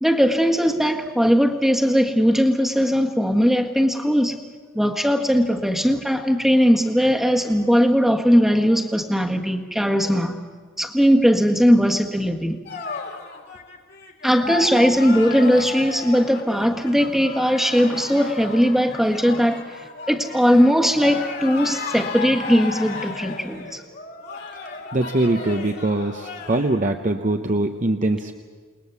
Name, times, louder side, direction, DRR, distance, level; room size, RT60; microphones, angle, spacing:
voice 1, 0.0-4.4 4.7-10.4 10.8-12.6 14.2-19.6 20.1-23.8, equal, ahead, 3 dB, 1.5 m, -19 dB
sound 1, 12.7-26.8, left 4 dB, 50° left, 2.8 m, -34 dB
voice 2, 24.9-28.3, right 2 dB, 40° right, 5 dB, 0.8 m, -22 dB
29.0 x 20.0 x 7.1 m, 1.5 s
head